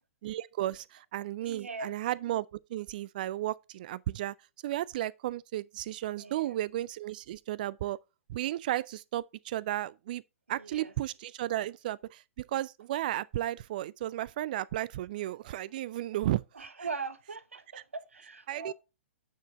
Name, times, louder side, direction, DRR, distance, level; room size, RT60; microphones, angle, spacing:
voice 1, 0.2-4.4 4.6-8.0 8.3-10.2 10.5-16.4 18.5-18.7, right 14 dB, 40° right, 0.3 m, -34 dB
voice 2, 1.4-1.9 6.2-6.6 10.5-10.9 16.5-18.7, right 4 dB, 70° right, 0.8 m, -40 dB
9.3 x 4.9 x 3.6 m
figure-of-eight pair, 115°, 7 cm